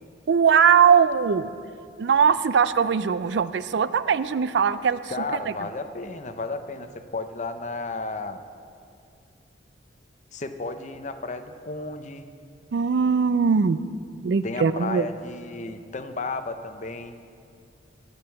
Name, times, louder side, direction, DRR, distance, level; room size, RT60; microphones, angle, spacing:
voice 1, 0.3-1.5 2.0-5.0 5.3-5.4 12.7-13.8 14.2-15.1, right 6 dB, 70° right, 15 dB, 0.4 m, -20 dB
voice 2, 5.1-8.4 10.3-12.2 14.4-17.1, left 3 dB, 40° left, 8 dB, 0.7 m, -33 dB
10.5 x 9.7 x 7.0 m, 2.4 s
head